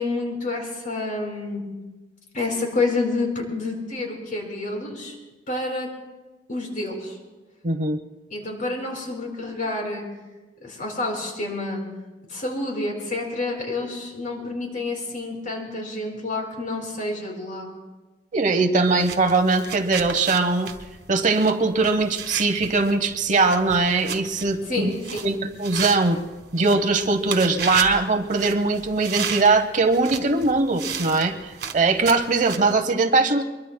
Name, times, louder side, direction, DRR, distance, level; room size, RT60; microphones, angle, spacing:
voice 1, 0.0-1.7 2.3-5.2 5.5-5.9 6.5-7.2 8.3-10.1 10.6-11.8 12.3-17.7 24.6-25.3, left 2 dB, 50° left, 0 dB, 4.5 m, -28 dB
voice 2, 7.6-8.0 18.3-20.7 21.1-24.9 25.2-26.2 26.5-33.4, right 3 dB, 45° right, 8 dB, 0.9 m, -21 dB
sound 1, 18.9-32.8, right 7 dB, 65° right, 1.6 m, -35 dB
23.5 x 23.0 x 2.2 m, 1.2 s
head